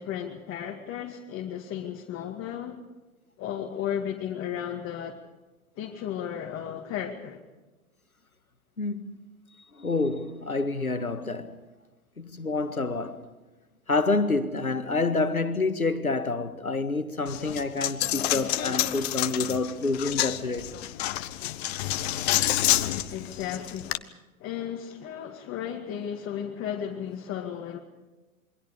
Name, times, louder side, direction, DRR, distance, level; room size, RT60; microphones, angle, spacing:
voice 1, 0.0-2.8 3.4-5.2 5.8-7.4 23.1-24.0 24.4-27.8, left 9 dB, 30° left, 2.3 m, -34 dB
voice 2, 8.8-9.2 9.8-11.6 12.2-13.3 13.9-20.7, left 3 dB, 90° left, 1.8 m, -28 dB
Coin (dropping), 17.3-24.0, left 14 dB, 45° left, 1.2 m, -28 dB
28.0 x 23.0 x 4.9 m
figure-of-eight pair, 100°, 42 cm